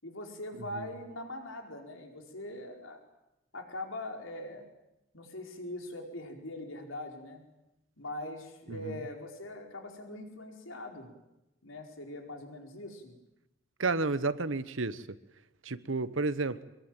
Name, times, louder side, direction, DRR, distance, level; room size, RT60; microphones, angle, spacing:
voice 1, 0.0-3.0 3.5-4.6 5.1-7.4 8.0-11.1 11.6-13.2, left 1 dB, 85° left, 3 dB, 4.8 m, -42 dB
voice 2, 13.8-15.0 15.6-16.6, right 3 dB, 75° right, 14 dB, 1.2 m, -31 dB
24.5 x 22.5 x 9.1 m, 0.90 s
head